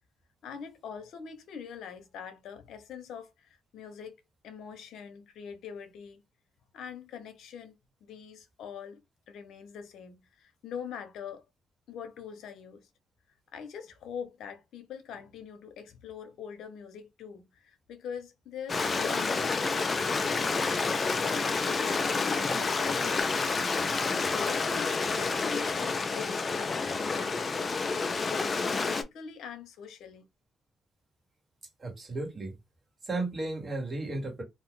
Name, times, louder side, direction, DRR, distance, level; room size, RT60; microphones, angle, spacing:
voice 1, 0.4-4.2 4.4-6.2 6.7-7.7 8.1-9.0 9.3-11.4 11.9-12.9 13.5-23.7 24.2-27.8 28.2-30.2, left 7 dB, 75° left, 0.8 m, -43 dB
Stream, 18.7-29.0, left 4 dB, 35° left, 0.5 m, -29 dB
voice 2, 31.8-32.5 33.0-34.4, right 2 dB, 30° right, 1.5 m, -34 dB
2.5 x 2.3 x 3.7 m
cardioid pair, 90°, 0 cm